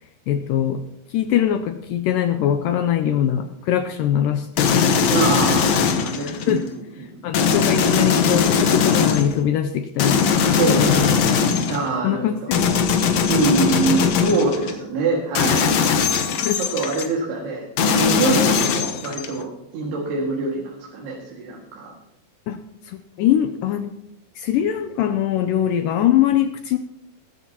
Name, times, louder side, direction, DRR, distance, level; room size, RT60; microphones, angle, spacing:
voice 1, 0.3-0.8 1.1-5.3 6.5-6.6 7.2-11.1 12.0-12.9 16.4-16.6 22.5-22.6 22.8-23.9 24.4-26.8, left 10 dB, 90° left, 8 dB, 1.9 m, -22 dB
sound 1, 4.6-6.6 7.3-9.4 10.0-11.9 12.5-14.7 15.4-17.1 17.8-19.4, left 6 dB, 65° left, 1.7 m, -20 dB
voice 2, 5.1-6.6 7.0-7.2 10.6-11.2 11.7-12.5 13.3-15.7 16.6-21.9, right 3 dB, 75° right, -2 dB, 4.1 m, -24 dB
20.0 x 14.5 x 2.9 m, 0.83 s
omnidirectional pair, 4.7 m